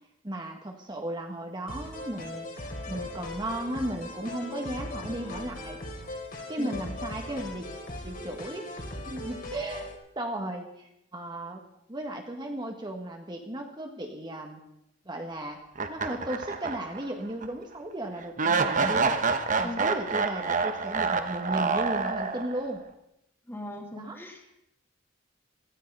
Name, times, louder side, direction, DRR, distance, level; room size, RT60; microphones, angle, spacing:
voice 1, 0.2-5.8 6.5-7.7 8.0-8.7 9.1-9.9 10.1-11.6 11.9-14.6 15.0-15.6 15.9-19.1 19.6-22.8 23.9-24.2, right 1 dB, 25° right, 2 dB, 1.5 m, -35 dB
sound 1, 1.7-9.9, left 1 dB, 50° left, 3.2 m, -39 dB
sound 2, 15.7-17.1 17.4-17.5 18.4-22.7, right 4 dB, 45° right, 1.1 m, -27 dB
voice 2, 23.5-24.4, left 1 dB, 10° left, 2 dB, 2.3 m, -39 dB
17.0 x 14.5 x 5.5 m, 0.82 s
head